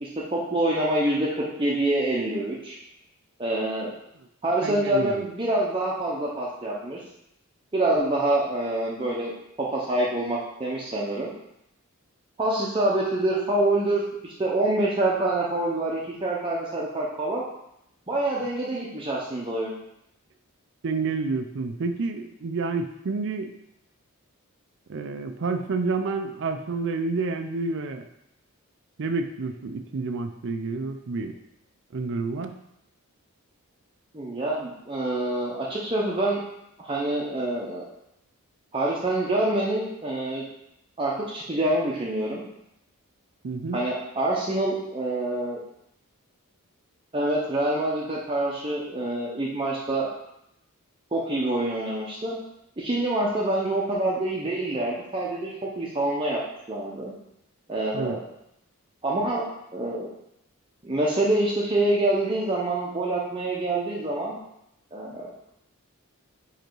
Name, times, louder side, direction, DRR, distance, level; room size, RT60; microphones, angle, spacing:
voice 1, 0.0-2.8 3.4-3.9 4.4-7.0 7.7-9.3 9.6-11.3 12.4-14.0 14.4-17.4 18.1-19.7 34.1-36.4 36.8-37.8 38.7-40.4 41.0-42.5 43.7-45.6 47.1-50.1 51.1-52.4 52.8-56.4 56.7-57.1 57.7-58.2 59.0-59.5 59.7-60.1 60.8-64.4 64.9-65.3, right 1 dB, 25° right, -5 dB, 0.7 m, -26 dB
voice 2, 4.6-5.2 20.8-23.5 24.9-28.0 29.0-31.3 31.9-32.5 43.4-43.8 57.9-58.2, right 4 dB, 55° right, 7 dB, 0.5 m, -29 dB
5.2 x 5.0 x 4.6 m, 0.82 s
head